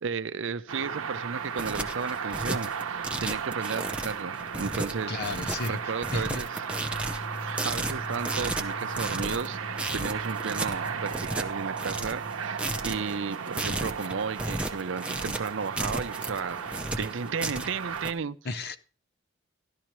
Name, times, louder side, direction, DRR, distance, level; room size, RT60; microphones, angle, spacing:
voice 1, 0.0-5.2 5.6-6.5 7.2-9.6 9.9-16.6 17.0-18.4, right 5 dB, 65° right, 0.5 m, -34 dB
sound 1, 0.7-18.1, right 6 dB, 90° right, 0.8 m, -35 dB
sound 2, 1.3-18.1, right 2 dB, 5° right, 0.8 m, -34 dB
voice 2, 5.1-6.4 18.4-18.8, left 3 dB, 50° left, 0.9 m, -34 dB
sound 3, 6.7-13.0, left 1 dB, 15° left, 0.4 m, -42 dB
13.0 x 12.0 x 3.1 m
head